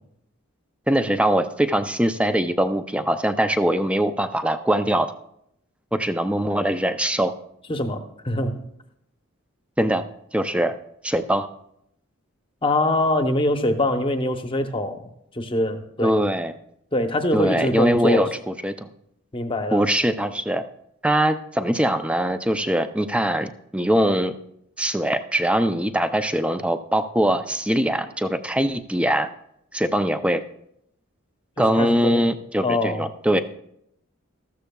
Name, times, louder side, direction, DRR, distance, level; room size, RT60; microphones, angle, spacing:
voice 1, 0.9-5.1 5.9-7.3 9.8-10.0 10.3-10.8 11.0-11.5 16.0-16.5 17.3-18.9 19.7-20.6 21.0-24.3 24.8-29.3 29.7-30.4 31.6-33.4, right 1 dB, 5° right, 9 dB, 0.4 m, -22 dB
voice 2, 7.7-8.7 12.6-16.1 16.9-18.3 19.3-19.9 31.6-32.3 32.6-33.0, left 1 dB, 25° left, 7 dB, 0.8 m, -24 dB
14.0 x 13.5 x 2.3 m, 0.76 s
head